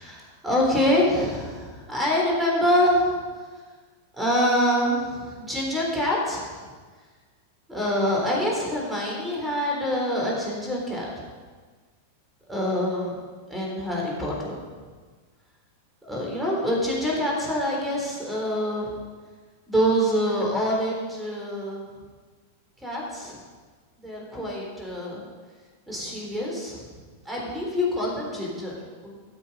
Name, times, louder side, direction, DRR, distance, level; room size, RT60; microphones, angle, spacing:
voice 1, 0.0-3.2 4.1-6.6 7.7-11.3 12.5-13.2 13.5-14.6 16.0-19.0 19.7-21.9 22.8-23.4 24.0-25.2 25.9-26.9 27.3-28.8 29.0-29.1, equal, 5° right, -3 dB, 3.8 m, -25 dB
13.5 x 7.5 x 5.5 m, 1.5 s
hypercardioid pair, 125°, 0 cm